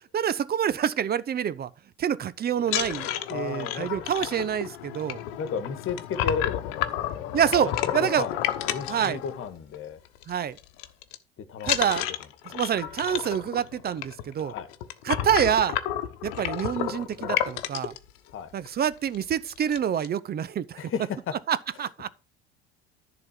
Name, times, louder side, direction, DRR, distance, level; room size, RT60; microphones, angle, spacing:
voice 1, 0.1-1.7 2.0-5.2 7.3-8.3 8.9-9.2 10.3-10.6 11.7-12.0 12.5-14.5 15.0-15.8 16.2-17.9 18.5-20.8 21.5-22.1, right 9 dB, 30° right, 0.7 m, -27 dB
sound 1, 2.6-9.8 10.1-10.3 10.6-11.2 11.6-18.0 18.7-18.8 19.1-19.2 19.5-20.1, left 12 dB, 70° left, 1.1 m, -31 dB
voice 2, 3.3-4.0 5.4-7.4 7.6-8.4 8.7-10.0 11.4-11.9 12.5-12.6 14.4-14.7 18.3-18.5 20.8-21.4, left 6 dB, 45° left, 1.6 m, -34 dB
10.5 x 4.0 x 7.4 m
hypercardioid pair, 80°, 30 cm